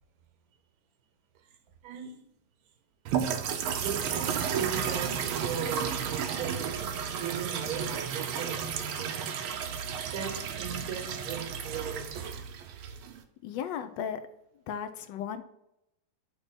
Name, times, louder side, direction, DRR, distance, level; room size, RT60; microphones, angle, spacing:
voice 1, 1.8-2.2 3.6-9.4 10.1-12.4, right 7 dB, 60° right, 1.1 m, -38 dB
sound 1, 3.1-13.2, right 7 dB, 85° right, 1.5 m, -33 dB
voice 2, 13.4-14.2 14.7-15.4, left 8 dB, 70° left, 1.2 m, -35 dB
6.5 x 3.0 x 5.9 m
omnidirectional pair, 2.2 m